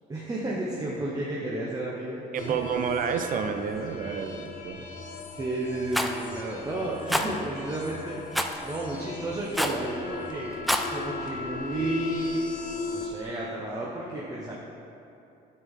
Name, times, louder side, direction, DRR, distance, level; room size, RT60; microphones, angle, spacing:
voice 1, 0.1-2.6 5.3-8.2 8.6-10.6 10.8-12.4 12.9-14.5, right 2 dB, 20° right, -5 dB, 0.9 m, -32 dB
voice 2, 2.3-4.8, right 6 dB, 55° right, 7 dB, 0.6 m, -30 dB
sound 1, 2.4-13.1, left 4 dB, 55° left, 1.0 m, -38 dB
Rattle, 5.9-6.1 7.1-7.3 8.3-8.6 9.5-9.8 10.5-10.9, equal, ahead, 0.4 m, -26 dB
8.7 x 6.4 x 3.7 m, 2.8 s
cardioid pair, 110°, 17 cm